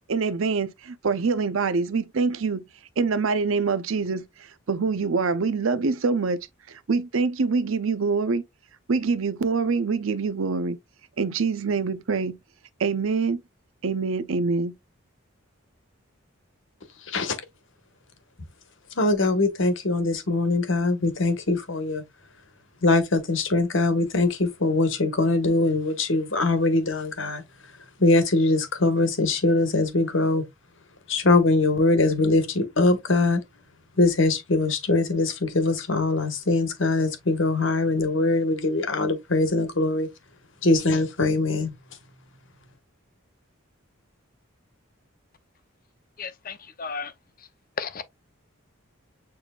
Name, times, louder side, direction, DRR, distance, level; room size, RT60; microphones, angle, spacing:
voice 1, 0.1-2.7 3.0-4.3 4.7-8.4 8.9-10.8 11.2-12.4 12.8-13.4 13.8-14.8, right 4 dB, 70° right, 0.6 m, -25 dB
voice 2, 19.0-22.0 22.8-27.4 28.0-30.4 31.1-33.4 34.0-40.1 40.6-41.7, left 2 dB, 60° left, 1.2 m, -22 dB
voice 3, 46.2-47.1 47.8-48.0, left 5 dB, 40° left, 0.6 m, -33 dB
6.9 x 3.3 x 2.3 m
head